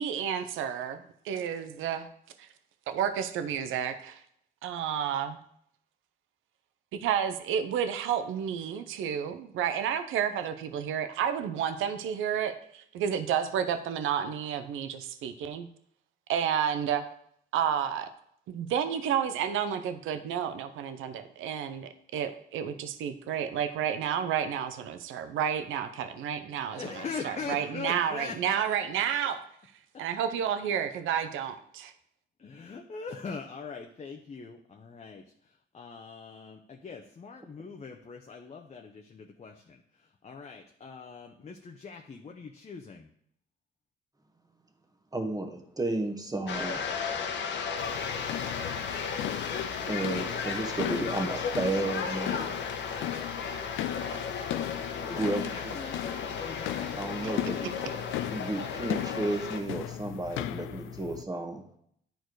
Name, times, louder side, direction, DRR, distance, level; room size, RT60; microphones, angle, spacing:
voice 1, 0.0-2.1 2.4-2.5 2.9-4.2 4.6-5.4 6.9-15.7 16.3-17.0 17.5-18.1 18.5-26.8 27.2-29.4 30.0-31.9, right 8 dB, 85° right, 10 dB, 0.7 m, -31 dB
voice 2, 26.7-28.7 29.9-30.0 32.4-43.1 55.1-57.4, left 5 dB, 35° left, 3 dB, 0.8 m, -42 dB
voice 3, 45.1-46.8 49.9-52.6 55.2-55.7 56.9-57.7 58.3-61.6, right 2 dB, 20° right, 5 dB, 1.5 m, -32 dB
sound 1, 46.5-59.6, left 6 dB, 65° left, 1.1 m, -35 dB
sound 2, 47.8-61.2, left 13 dB, 85° left, 0.4 m, -37 dB
10.5 x 4.5 x 4.7 m, 0.69 s
cardioid pair, 90°, 20 cm